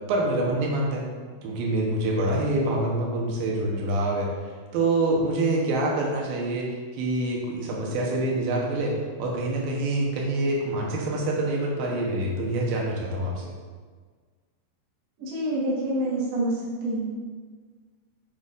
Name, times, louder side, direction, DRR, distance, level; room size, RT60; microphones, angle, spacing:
voice 1, 0.1-1.1 1.4-4.3 4.7-8.9 9.2-13.4, right 2 dB, 85° right, -2 dB, 2.8 m, -26 dB
voice 2, 15.2-17.1, right 1 dB, 55° right, -5 dB, 2.0 m, -27 dB
8.5 x 5.3 x 2.5 m, 1.5 s
omnidirectional pair, 4.1 m